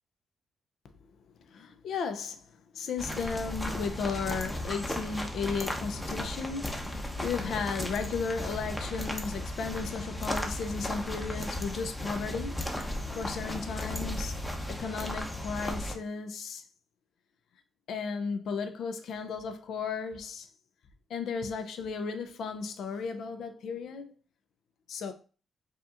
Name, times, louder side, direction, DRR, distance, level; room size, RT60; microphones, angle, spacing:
voice 1, 1.5-2.4 2.7-14.4 14.7-16.6 17.9-20.5 21.1-24.1 24.9-25.1, left 5 dB, 75° left, 0.4 m, -35 dB
sound 1, 3.0-16.0, left 1 dB, 10° left, 0.7 m, -35 dB
4.8 x 2.8 x 2.4 m
cardioid pair, 100°, 0 cm